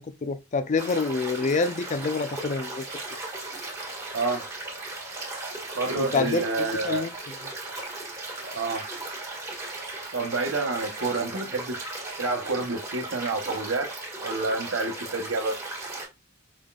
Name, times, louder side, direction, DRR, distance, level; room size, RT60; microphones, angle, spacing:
voice 1, 0.0-2.8 6.0-7.1, left 4 dB, 40° left, 0.4 m, -27 dB
sound 1, 0.8-16.0, right 2 dB, 15° right, 1.7 m, -37 dB
voice 2, 4.1-4.5 5.7-7.1 8.5-8.9 10.1-11.8 12.2-13.9 14.2-15.6, right 3 dB, 80° right, 1.0 m, -28 dB
5.2 x 3.8 x 2.3 m
head